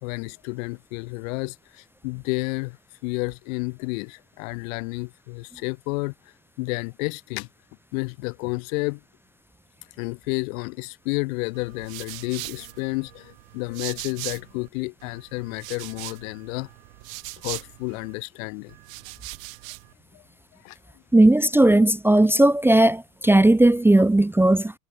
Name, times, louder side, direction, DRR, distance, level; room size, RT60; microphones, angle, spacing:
voice 1, 0.0-2.8 3.0-6.1 6.6-7.5 7.9-9.0 10.0-16.7 17.4-18.7 20.1-20.2 20.6-20.8, left 27 dB, 70° left, 1.9 m, -31 dB
sound 1, 11.5-14.7 15.0-18.1 18.7-19.9, right 24 dB, 75° right, 1.9 m, -40 dB
voice 2, 21.1-24.7, right 1 dB, 5° right, 0.7 m, -17 dB
supercardioid pair, 105°, 41 cm